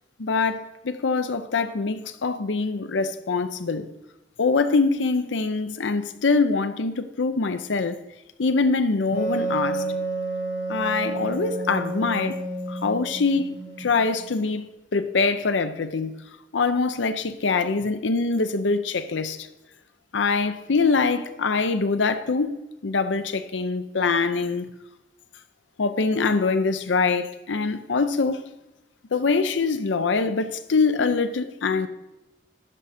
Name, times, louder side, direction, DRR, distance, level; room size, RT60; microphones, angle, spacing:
voice 1, 0.2-3.9 4.4-8.0 8.4-9.8 10.7-12.4 12.7-14.7 14.9-16.1 16.5-19.4 20.1-24.6 25.8-28.4 29.1-31.9, left 4 dB, 85° left, 0.6 m, -24 dB
Wind instrument woodwind instrument, 9.1-14.5, right 2 dB, 55° left, 2.8 m, -30 dB
11.5 x 5.0 x 4.2 m
head